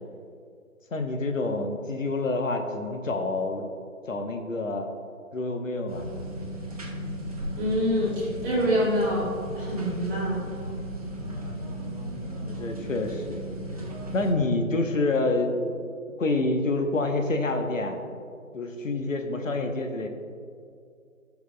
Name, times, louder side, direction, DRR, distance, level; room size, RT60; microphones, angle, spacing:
voice 1, 0.9-3.6 4.1-4.9 5.3-6.1 11.2-11.5 12.4-13.4 14.1-15.9 16.2-18.0 18.5-20.1, left 2 dB, 65° left, 5 dB, 1.0 m, -27 dB
sound 1, 5.9-14.3, right 1 dB, 25° right, 0.8 m, -35 dB
voice 2, 7.6-9.3 9.5-10.4, equal, 5° right, -11 dB, 1.1 m, -26 dB
15.0 x 5.9 x 2.2 m, 2.3 s
figure-of-eight pair, 150°, 42 cm